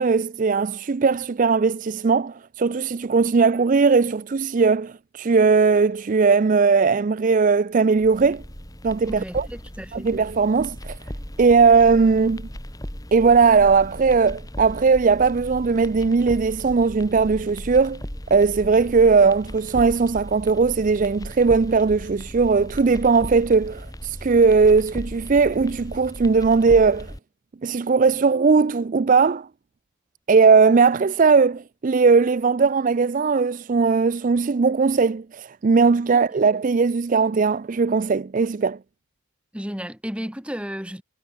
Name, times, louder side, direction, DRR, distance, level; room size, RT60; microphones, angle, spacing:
voice 1, 0.0-8.4 8.8-9.5 9.9-11.0 11.4-12.4 13.1-18.0 18.3-27.1 27.6-29.5 30.3-38.8, right 4 dB, 35° right, 0.4 m, -18 dB
sound 1, 8.0-27.2, equal, 15° left, 3.1 m, -37 dB
voice 2, 9.1-10.2 39.5-41.0, equal, 5° right, 2.8 m, -33 dB
head